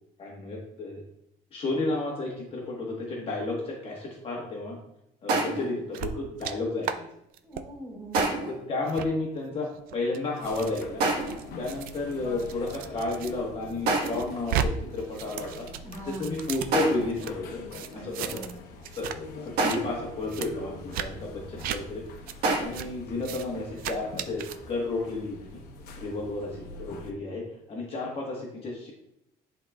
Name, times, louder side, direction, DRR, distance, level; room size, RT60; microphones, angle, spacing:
voice 1, 0.2-1.0 1.5-4.8 5.2-7.1 8.5-11.0 11.6-15.7 16.1-17.6 17.9-18.4 18.9-22.0 22.6-25.6 26.0-28.9, left 2 dB, 35° left, -2 dB, 1.2 m, -32 dB
sound 1, 5.3-5.8 8.1-8.7 11.0-11.5 13.9-14.4 16.7-17.2 19.6-20.1 22.4-22.6, right 3 dB, 85° right, 1.3 m, -27 dB
sound 2, 5.9-6.5 6.8-7.0 7.3-7.6 8.1-8.3 8.9-9.1 9.7-13.3 13.7-14.7 15.0-17.3 17.7-18.6 18.8-19.2 19.5-19.8 20.3-20.5 20.9-21.1 21.6-21.8 22.3-22.4 22.7-22.9 23.2-23.5 23.8-24.6, right 9 dB, 65° right, 0.5 m, -35 dB
voice 2, 7.4-8.4 15.8-16.4 17.9-18.6, right 1 dB, 20° right, -4 dB, 2.3 m, -42 dB
sound 3, 10.4-27.1, left 2 dB, 65° left, 0.9 m, -45 dB
10.5 x 4.0 x 2.3 m, 0.80 s
cardioid pair, 170°, 16 cm